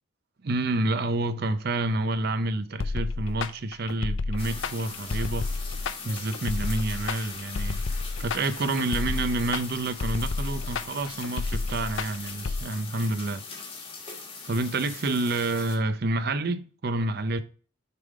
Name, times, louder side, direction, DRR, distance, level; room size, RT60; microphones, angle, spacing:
voice 1, 0.4-5.5 6.0-7.8 8.2-13.4 14.5-17.4, right 2 dB, 50° right, 0.6 m, -28 dB
sound 1, 2.8-12.6, left 3 dB, 65° left, 0.5 m, -31 dB
sound 2, 4.4-15.8, left 4 dB, 25° left, 1.3 m, -41 dB
6.7 x 3.7 x 4.8 m
head